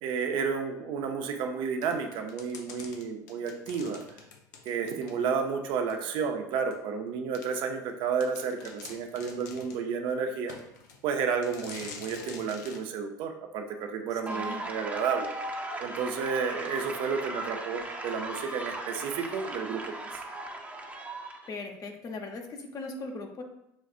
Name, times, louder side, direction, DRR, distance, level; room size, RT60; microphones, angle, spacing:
voice 1, 0.0-4.0 4.7-10.5 11.0-15.3 15.8-19.9, right 6 dB, 65° right, 5 dB, 0.6 m, -31 dB
sound 1, 1.8-5.5 5.9-6.0 6.7-6.8 7.3-7.5 7.9-8.0 8.2-9.8 10.5-11.0 11.4-12.8, left 5 dB, 85° left, 0.6 m, -46 dB
voice 2, 14.1-14.6 21.5-23.4, left 3 dB, 40° left, 3 dB, 0.8 m, -39 dB
sound 2, 14.3-21.5, right 2 dB, 15° right, 0.7 m, -37 dB
6.1 x 2.4 x 2.4 m, 0.82 s
hypercardioid pair, 80°, 9 cm